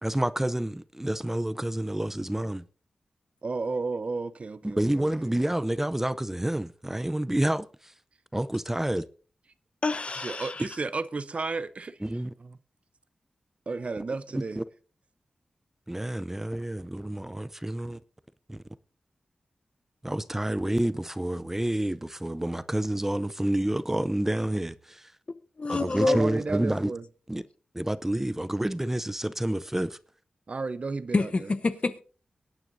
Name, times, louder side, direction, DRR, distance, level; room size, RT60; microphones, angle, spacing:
voice 1, 0.0-2.6 4.6-7.7 8.3-9.0 12.0-12.3 14.3-14.6 15.9-18.0 18.5-18.6 20.0-25.1 25.7-26.9 27.3-27.4 27.7-30.0, right 1 dB, 15° right, 0.6 m, -29 dB
voice 2, 3.4-5.3 10.2-12.1 12.4-12.6 13.7-14.6 25.8-27.1 30.5-31.5, right 3 dB, 55° right, 0.7 m, -33 dB
voice 3, 9.8-10.7 25.6-26.2 31.1-32.0, left 3 dB, 50° left, 0.9 m, -27 dB
23.5 x 9.1 x 2.7 m
cardioid pair, 60°, 3 cm